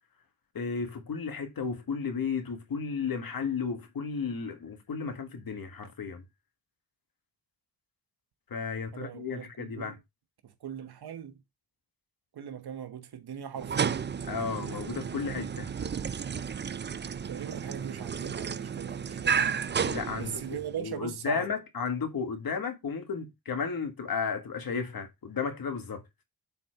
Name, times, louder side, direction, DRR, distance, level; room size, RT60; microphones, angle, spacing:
voice 1, 0.5-6.2 8.5-10.0 14.3-15.7 19.8-26.0, left 5 dB, 65° left, 1.7 m, -33 dB
voice 2, 8.9-9.9 10.4-11.4 12.3-14.1 17.2-19.6 20.2-21.5, right 9 dB, 90° right, 1.1 m, -40 dB
sound 1, 13.6-20.8, right 7 dB, 30° right, 0.4 m, -32 dB
7.2 x 4.4 x 4.4 m
wide cardioid pair, 110°, 37 cm